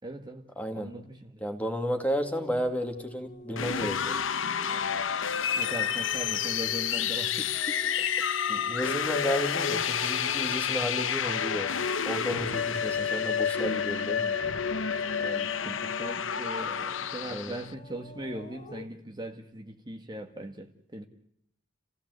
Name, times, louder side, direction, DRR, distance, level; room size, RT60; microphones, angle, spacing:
voice 1, 0.0-0.4 0.7-1.4 5.6-8.2 15.2-21.1, right 1 dB, 20° right, 4 dB, 1.8 m, -40 dB
voice 2, 0.6-0.9 1.4-4.2 8.5-11.7 12.1-14.4 17.3-17.6, equal, 10° left, 5 dB, 2.6 m, -32 dB
sound 1, 2.1-11.9 12.2-18.9, left 1 dB, 40° left, 1.6 m, -47 dB
sound 2, 3.5-17.7, left 7 dB, 70° left, 0.9 m, -29 dB
29.5 x 17.0 x 8.1 m, 0.72 s
head